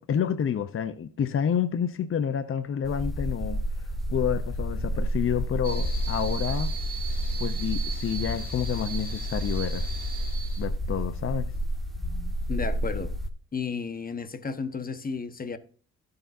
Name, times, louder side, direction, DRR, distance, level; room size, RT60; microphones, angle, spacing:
voice 1, 0.1-6.7 7.4-9.9 10.6-11.5, left 8 dB, 45° left, 0.8 m, -29 dB
sound 1, 2.8-13.3, equal, ahead, 2.0 m, -30 dB
sound 2, 5.6-10.7, right 5 dB, 30° right, 2.6 m, -39 dB
voice 2, 12.5-13.1 13.5-15.6, left 5 dB, 30° left, 1.4 m, -33 dB
16.5 x 6.9 x 2.7 m
cardioid pair, 90°, 30 cm